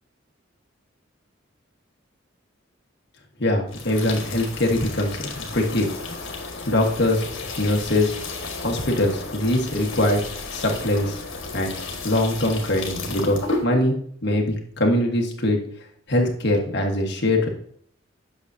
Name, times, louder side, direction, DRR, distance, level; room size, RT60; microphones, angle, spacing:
voice 1, 3.4-5.9 6.7-7.3 7.6-8.2 8.6-11.2 11.5-11.7 12.0-15.6 16.1-17.5, left 1 dB, 55° left, 2 dB, 1.4 m, -22 dB
sound 1, 3.7-13.6, left 3 dB, 80° left, 1.6 m, -33 dB
8.4 x 6.2 x 2.7 m, 0.62 s
head